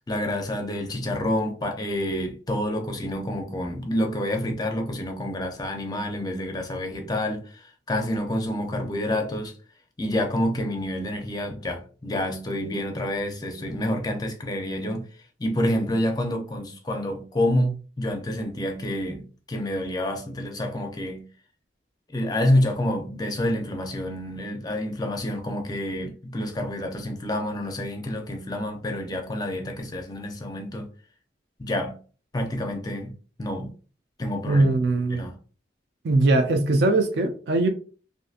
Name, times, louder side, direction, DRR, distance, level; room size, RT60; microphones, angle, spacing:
voice 1, 0.1-9.5 10.0-15.0 15.4-19.2 19.5-21.2 22.1-30.9 31.6-31.9 32.3-33.1 33.4-33.7 34.2-34.7 35.1-35.3, left 1 dB, 20° left, 0.4 m, -28 dB
voice 2, 34.5-35.3 36.0-37.7, right 2 dB, 65° right, 0.4 m, -21 dB
2.6 x 2.5 x 2.4 m
head